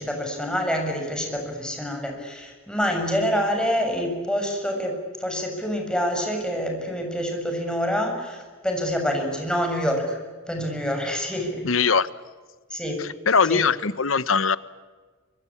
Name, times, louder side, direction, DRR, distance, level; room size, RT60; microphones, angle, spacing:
voice 1, 0.0-10.2 10.5-11.6 12.7-13.0 13.5-13.6, equal, 5° left, 2 dB, 7.1 m, -26 dB
voice 2, 11.6-12.1 13.0-14.6, left 5 dB, 85° left, 16 dB, 1.1 m, -21 dB
25.0 x 24.5 x 8.7 m, 1.4 s
head